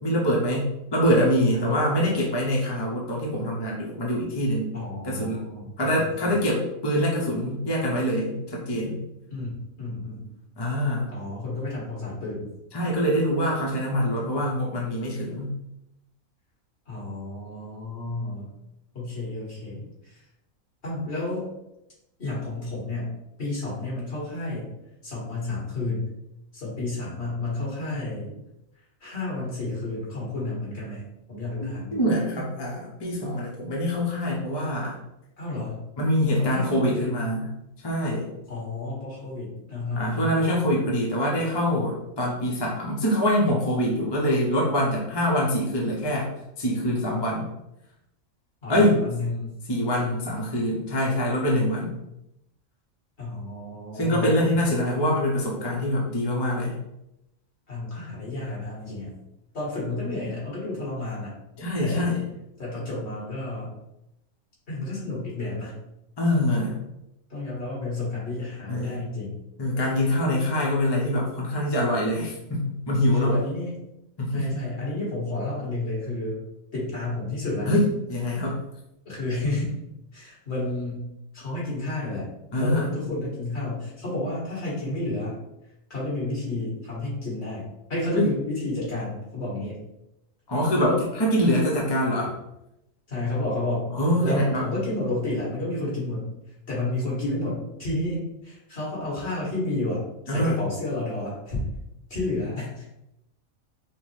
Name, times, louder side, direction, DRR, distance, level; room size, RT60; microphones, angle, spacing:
voice 1, 0.0-4.7 5.0-5.4 5.8-9.0 10.6-11.1 12.7-15.6 31.6-35.0 36.0-37.5 37.8-38.3 39.9-46.3 46.6-47.5 48.7-49.0 49.7-51.9 53.9-56.7 61.6-62.3 66.2-66.8 68.7-69.0 69.6-73.4 74.2-74.6 77.7-78.6 82.5-83.0 88.1-88.3 90.5-92.3 93.9-94.6 100.3-100.6, equal, 25° left, -4 dB, 0.6 m, -24 dB
voice 2, 4.7-6.3 9.3-10.3 11.1-12.5 16.9-18.5 18.9-20.2 20.8-21.5 22.2-24.7 25.0-26.1 26.5-28.3 29.0-32.0 35.4-35.8 36.4-37.3 38.5-40.4 48.6-49.6 53.2-54.5 57.7-59.1 59.5-61.4 61.8-62.1 62.6-63.7 64.7-65.8 67.3-69.4 73.1-73.7 74.3-76.4 76.7-77.7 78.3-78.4 79.1-79.7 80.1-81.0 81.3-82.3 82.6-85.4 85.9-89.8 90.8-91.0 93.1-93.9 94.2-96.3 96.7-101.6 102.1-102.8, left 2 dB, 50° left, -6 dB, 2.0 m, -31 dB
5.6 x 2.1 x 3.1 m, 0.86 s
omnidirectional pair, 1.4 m